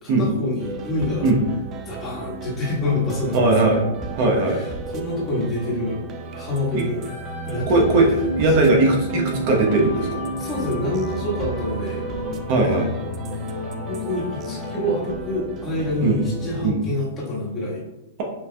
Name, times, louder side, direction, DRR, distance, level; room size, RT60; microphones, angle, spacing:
voice 1, 0.0-1.3 1.8-3.5 4.4-6.0 6.3-7.0 7.4-7.8 10.4-12.0 13.9-17.8, left 2 dB, 25° left, -6 dB, 1.5 m, -27 dB
sound 1, 0.6-16.7, right 4 dB, 30° right, 0.4 m, -35 dB
voice 2, 3.3-3.8 4.2-4.6 6.7-6.8 7.7-10.2 12.5-12.9 16.0-16.2 16.6-16.8, right 2 dB, 50° right, 0 dB, 0.9 m, -19 dB
sound 2, 7.1-14.9, equal, 50° left, 1.4 m, -30 dB
5.7 x 2.7 x 2.3 m, 0.95 s
hypercardioid pair, 135°, 0 cm